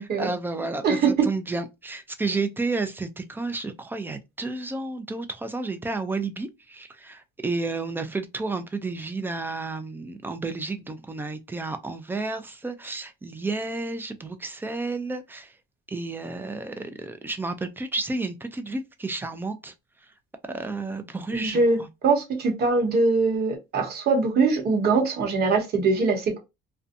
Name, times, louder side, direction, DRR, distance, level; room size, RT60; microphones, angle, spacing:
voice 1, 0.2-15.5 15.9-19.7 20.4-21.9, right 3 dB, 10° right, 0.3 m, -31 dB
voice 2, 0.8-1.3 21.3-21.8 22.0-26.4, right 4 dB, 50° right, 1.0 m, -22 dB
2.5 x 2.2 x 2.5 m
cardioid pair, 135°, 21 cm